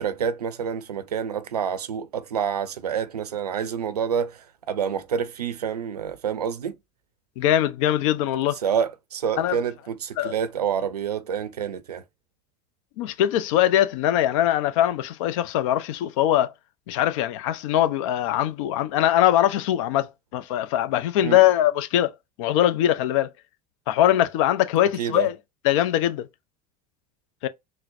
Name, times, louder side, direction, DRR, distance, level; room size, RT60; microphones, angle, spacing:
voice 1, 0.0-6.7 8.6-12.0 21.2-21.4 25.0-25.3, right 7 dB, 75° right, 0.5 m, -28 dB
voice 2, 7.4-8.6 9.4-9.6 10.2-10.3 13.0-16.5 16.9-22.1 22.4-23.3 23.9-25.3 25.6-26.3 27.4-27.5, left 12 dB, 55° left, 0.4 m, -22 dB
3.9 x 2.0 x 2.6 m
figure-of-eight pair, 75°, 20 cm